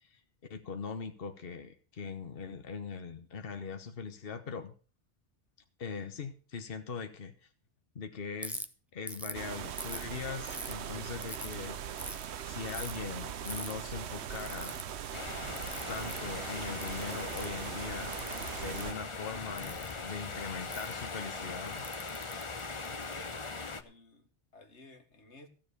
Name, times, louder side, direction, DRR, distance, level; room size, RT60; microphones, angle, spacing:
voice 1, 0.5-4.7 5.8-7.5 7.9-8.6 8.9-11.8 12.4-14.9 15.9-18.1 18.6-21.9, left 5 dB, 55° left, 1.3 m, -41 dB
Ratchet pawl, 8.4-8.7 9.1-9.4 9.8-10.7 11.2-11.5 12.0-12.2 12.7-13.0 13.5-13.7 14.3-14.8 15.6-16.2 16.8-17.6 18.1-18.8 19.6-19.9 20.7-20.9 21.7-23.1, equal, ahead, 0.7 m, -42 dB
sound 1, 9.3-18.9, right 9 dB, 70° right, 1.0 m, -40 dB
sound 2, 15.1-23.8, left 4 dB, 30° left, 0.9 m, -40 dB
voice 2, 22.9-23.4 23.8-25.5, left 2 dB, 85° left, 2.1 m, -55 dB
15.0 x 7.3 x 6.9 m
omnidirectional pair, 1.2 m